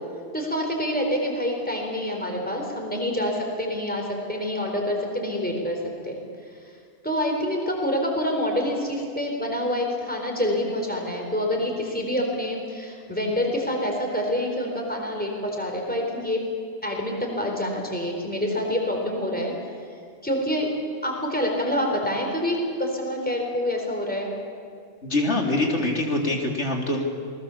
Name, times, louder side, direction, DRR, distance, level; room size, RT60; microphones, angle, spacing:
voice 1, 0.3-5.8 6.0-6.2 7.0-16.4 16.8-19.5 20.2-20.7 21.0-24.3, left 1 dB, 10° left, 1 dB, 4.3 m, -27 dB
voice 2, 25.0-27.0, left 2 dB, 80° left, 0 dB, 3.5 m, -24 dB
27.5 x 20.5 x 7.2 m, 2.2 s
omnidirectional pair, 1.1 m